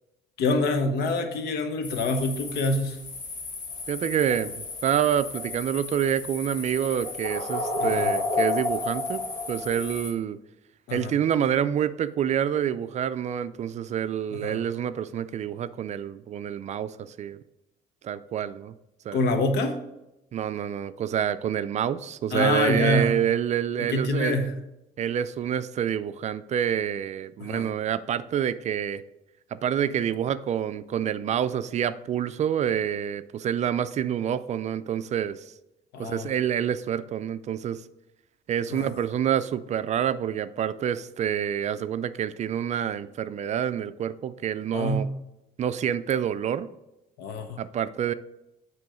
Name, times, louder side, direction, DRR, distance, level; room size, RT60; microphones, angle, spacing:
voice 1, 0.4-3.0 7.8-8.1 10.9-11.1 14.4-14.6 19.1-19.8 22.3-23.1 23.9-24.5 27.4-27.7 35.9-36.3 38.7-38.9 44.7-45.1 47.2-47.6, left 2 dB, 75° left, 6 dB, 1.0 m, -26 dB
sound 1, 1.8-10.1, left 3 dB, 50° left, 2.0 m, -32 dB
voice 2, 3.9-4.5 4.8-10.4 10.9-17.4 18.0-18.7 19.1-19.2 20.3-24.5 25.0-29.0 29.5-35.4 36.0-37.8 38.5-45.1 45.6-46.7 47.6-48.1, right 9 dB, 45° right, 14 dB, 0.4 m, -27 dB
9.0 x 3.1 x 4.9 m, 0.92 s
cardioid pair, 110°, 17 cm